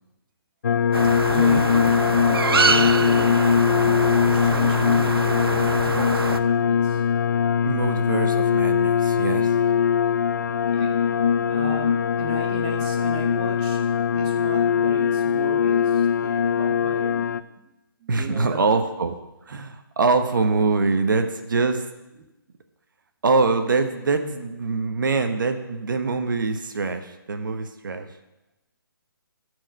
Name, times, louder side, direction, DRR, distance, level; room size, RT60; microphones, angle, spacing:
sound 1, 0.6-17.4, left 7 dB, 50° left, 0.4 m, -21 dB
sound 2, 0.9-6.4, right 5 dB, 80° right, 0.6 m, -25 dB
voice 1, 1.3-7.0 10.4-11.0 11.5-13.9 14.1-17.7 18.0-18.8 22.2-22.3, right 3 dB, 20° right, 2 dB, 0.9 m, -37 dB
voice 2, 7.6-9.5 18.1-19.1 19.5-21.9 23.2-28.1, right 4 dB, 60° right, 7 dB, 1.1 m, -24 dB
12.5 x 4.9 x 6.5 m, 0.96 s
hypercardioid pair, 160°, 12 cm